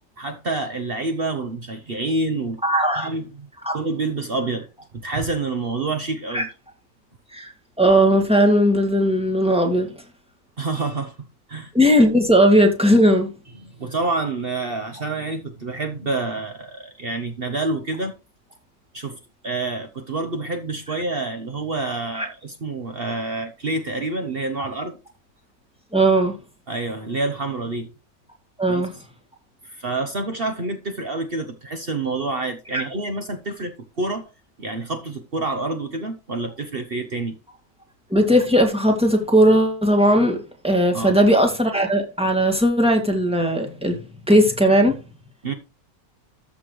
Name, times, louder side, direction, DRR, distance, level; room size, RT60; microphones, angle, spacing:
voice 1, 0.2-2.6 2.9-3.5 3.7-4.7 4.9-6.5 10.6-11.2 11.5-11.7 13.6-18.1 18.9-19.2 19.4-25.0 26.7-27.9 28.7-28.8 29.6-34.3 34.6-37.3 40.9-41.2 45.4-45.5, right 3 dB, 45° right, 1.1 m, -27 dB
voice 2, 2.6-3.1 3.6-3.8 6.3-6.5 7.3-7.5 7.8-9.9 11.7-13.3 22.1-22.3 25.9-26.4 28.6-28.9 38.1-40.4 40.6-44.0 44.3-45.0, equal, 5° right, 1.9 m, -17 dB
13.5 x 6.3 x 3.2 m
omnidirectional pair, 1.6 m